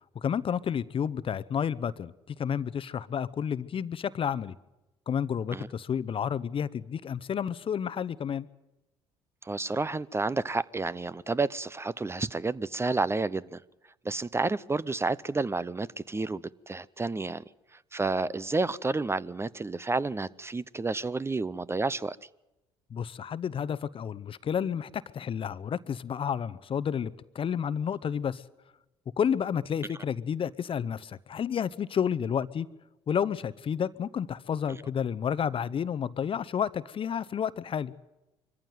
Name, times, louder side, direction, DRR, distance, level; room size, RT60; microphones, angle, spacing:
voice 1, 0.1-4.5 5.1-8.5 22.9-28.4 29.2-32.7 33.1-37.9, left 8 dB, 45° left, 0.8 m, -31 dB
voice 2, 9.4-13.6 14.0-17.4 17.9-22.2, right 3 dB, 20° right, 0.7 m, -30 dB
23.5 x 14.5 x 9.3 m
hypercardioid pair, 60°, 13 cm